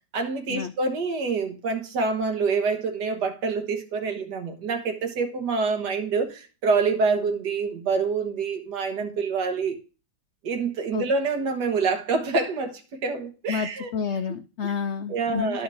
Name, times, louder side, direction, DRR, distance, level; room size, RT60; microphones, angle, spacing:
voice 1, 0.1-9.8 10.4-13.9 14.6-14.7 15.1-15.6, right 4 dB, 85° right, 1.8 m, -26 dB
voice 2, 13.5-15.6, left 6 dB, 90° left, 0.6 m, -30 dB
12.0 x 5.4 x 3.5 m
omnidirectional pair, 1.8 m